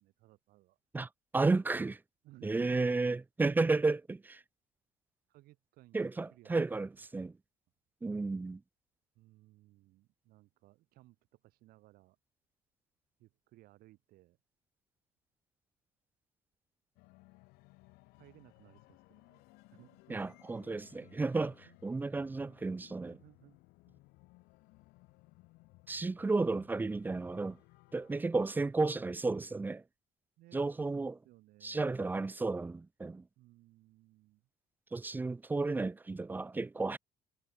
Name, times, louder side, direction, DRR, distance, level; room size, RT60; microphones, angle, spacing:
voice 1, 0.0-0.8 2.2-3.1 5.3-7.1 9.1-12.2 13.2-14.4 18.2-19.4 19.7-20.4 21.0-22.3 23.1-23.6 23.9-24.0 30.4-31.8 33.4-34.4, right 17 dB, 75° right, 4.8 m, -60 dB
voice 2, 0.9-2.0 2.4-4.4 5.9-7.3 8.0-8.6 20.1-21.5 21.8-23.1 25.9-27.6 27.9-29.8 30.5-31.1 31.6-33.2 34.9-37.0, right 3 dB, 10° right, 0.3 m, -32 dB
sound 1, 17.0-28.3, left 23 dB, 80° left, 4.7 m, -62 dB
cardioid pair, 100°, 16 cm